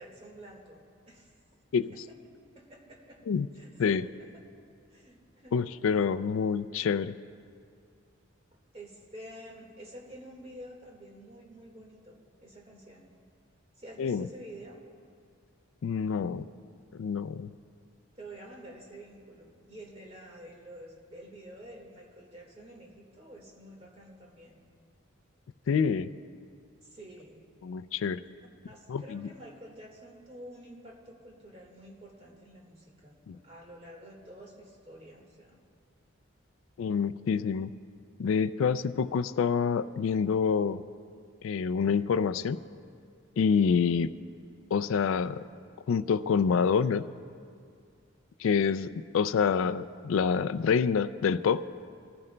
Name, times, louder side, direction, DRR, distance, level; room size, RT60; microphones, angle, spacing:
voice 1, 0.0-1.3 1.9-3.2 3.6-4.3 4.9-6.0 8.5-13.1 13.8-14.8 18.2-24.6 26.8-27.4 28.7-35.6, right 1 dB, 30° right, -1 dB, 1.7 m, -49 dB
voice 2, 5.5-7.1 14.0-14.3 15.8-16.4 16.9-17.5 25.7-26.1 27.6-28.2 28.9-29.3 33.3-33.4 36.8-37.7 38.2-40.8 41.4-42.6 43.4-44.1 44.7-45.4 45.9-47.0 48.4-51.6, left 6 dB, 75° left, 14 dB, 0.3 m, -27 dB
22.0 x 14.5 x 2.2 m, 2.2 s
head